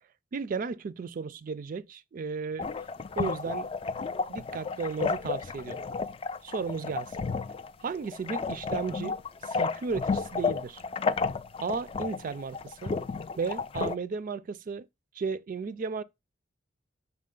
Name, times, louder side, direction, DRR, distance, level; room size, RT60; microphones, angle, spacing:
voice 1, 0.3-2.7 3.2-3.7 4.3-5.8 6.4-7.2 7.8-9.1 9.4-10.8 11.6-13.0 13.4-14.9 15.2-16.0, right 5 dB, 45° right, 0.3 m, -34 dB
sound 1, 2.6-14.0, left 4 dB, 30° left, 0.3 m, -32 dB
6.0 x 4.2 x 3.7 m
head